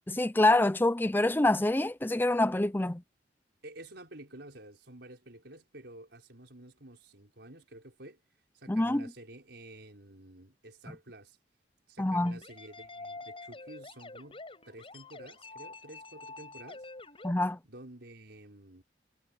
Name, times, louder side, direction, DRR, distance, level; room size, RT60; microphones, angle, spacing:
voice 1, 0.1-3.0 8.7-9.1 12.0-12.4 17.2-17.6, left 2 dB, 10° left, 0.5 m, -26 dB
voice 2, 3.6-8.2 8.5-11.4 11.9-16.8 17.7-18.8, right 1 dB, 70° right, 5.6 m, -50 dB
sound 1, 12.3-17.3, left 3 dB, 30° left, 6.3 m, -47 dB
head